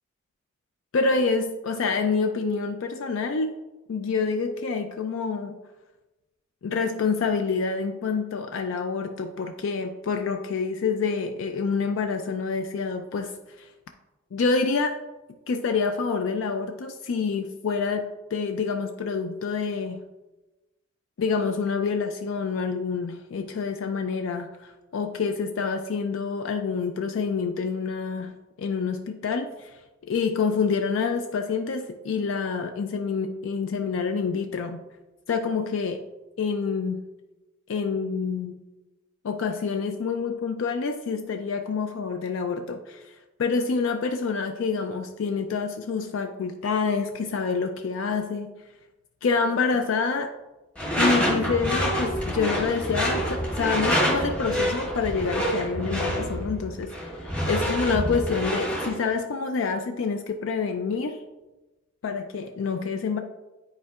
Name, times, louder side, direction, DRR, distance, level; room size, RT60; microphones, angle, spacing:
voice 1, 0.9-3.6 3.9-5.6 6.6-13.7 14.3-15.0 15.5-18.1 18.3-20.0 21.2-29.8 30.1-34.8 35.3-36.0 36.4-37.0 37.7-38.6 39.2-48.5 49.2-50.3 51.0-61.2 62.0-63.2, left 5 dB, 65° left, 6 dB, 0.4 m, -27 dB
Door / Screech, 50.8-59.0, equal, 5° left, 0.9 m, -27 dB
9.7 x 4.3 x 2.4 m, 1.1 s
head